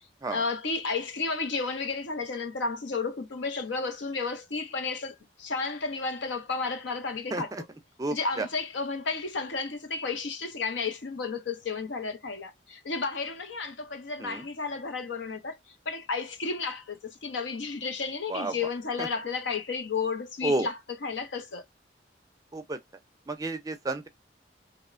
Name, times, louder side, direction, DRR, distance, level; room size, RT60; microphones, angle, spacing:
voice 1, 0.3-7.7 8.1-15.6 15.9-21.6, left 4 dB, 80° left, 0.6 m, -32 dB
voice 2, 7.3-7.6 8.0-8.5 14.2-14.4 18.3-18.5 19.0-19.1 20.4-20.7 22.5-22.8 23.3-24.1, right 2 dB, 20° right, 0.4 m, -31 dB
2.9 x 2.1 x 2.4 m
head